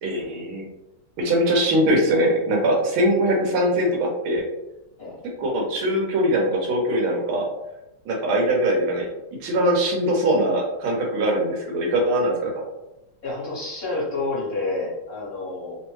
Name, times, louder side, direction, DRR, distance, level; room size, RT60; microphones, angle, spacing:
voice 1, 0.0-0.7 1.2-4.4 5.4-7.4 8.0-9.1 9.4-12.6, right 1 dB, 80° right, -1 dB, 1.6 m, -22 dB
voice 2, 13.2-15.8, left 2 dB, 45° left, -8 dB, 1.5 m, -29 dB
3.6 x 2.1 x 3.0 m, 0.94 s
omnidirectional pair, 2.3 m